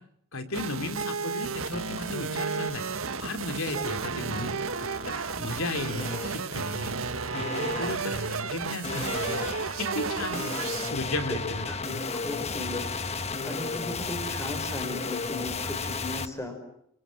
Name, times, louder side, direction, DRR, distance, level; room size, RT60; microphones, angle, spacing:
voice 1, 0.3-2.8 3.2-4.5 5.0-5.1 5.4-7.0 7.3-9.4 9.8-10.4 10.9-11.6 11.9-12.0, left 2 dB, 70° left, 8 dB, 3.3 m, -34 dB
sound 1, 0.5-10.9, right 5 dB, 70° right, 1.7 m, -33 dB
sound 2, 2.5-2.7 3.1-3.8 4.3-4.8 5.8-6.5 7.3-16.3, left 4 dB, 30° left, 1.3 m, -34 dB
voice 2, 11.7-16.6, left 1 dB, 15° left, 6 dB, 5.7 m, -37 dB
28.0 x 25.5 x 7.7 m, 0.72 s
head